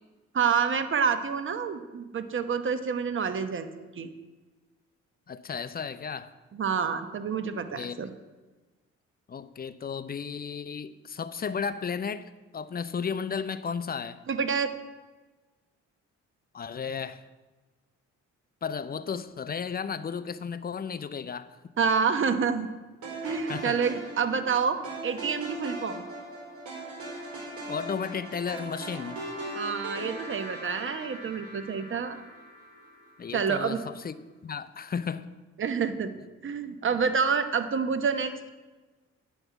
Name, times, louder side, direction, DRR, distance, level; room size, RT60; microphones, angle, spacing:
voice 1, 0.3-4.1 6.5-8.1 14.3-14.7 21.8-22.7 23.2-24.8 25.0-26.0 29.5-32.2 33.3-33.8 35.6-36.1 36.4-38.3, right 6 dB, 40° right, 1.0 m, -28 dB
voice 2, 5.3-6.3 7.8-8.0 9.3-14.2 16.5-17.2 18.6-21.6 23.5-23.8 27.7-29.2 33.2-34.1 34.4-35.3, left 6 dB, 30° left, 0.6 m, -34 dB
sound 1, 23.0-33.3, right 1 dB, 70° right, 4.2 m, -39 dB
9.1 x 5.8 x 8.2 m
cardioid pair, 90°, 30 cm